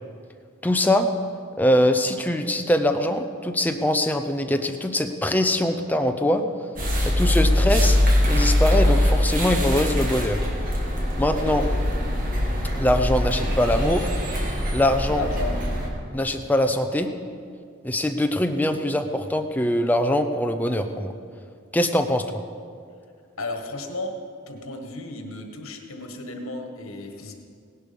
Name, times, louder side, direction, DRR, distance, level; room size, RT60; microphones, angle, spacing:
voice 1, 0.6-1.1 1.6-6.4 7.0-8.0 8.3-10.4 11.2-11.7 12.7-14.1 14.7-15.3 16.1-17.1 17.8-21.1 21.7-22.4, left 1 dB, 10° left, 6 dB, 0.6 m, -22 dB
sound 1, 6.8-15.9, left 1 dB, 40° right, 2.0 m, -22 dB
voice 2, 15.1-15.6 23.4-24.1 24.5-27.3, left 2 dB, 85° left, 4 dB, 1.7 m, -34 dB
17.5 x 11.0 x 5.4 m, 2.3 s
head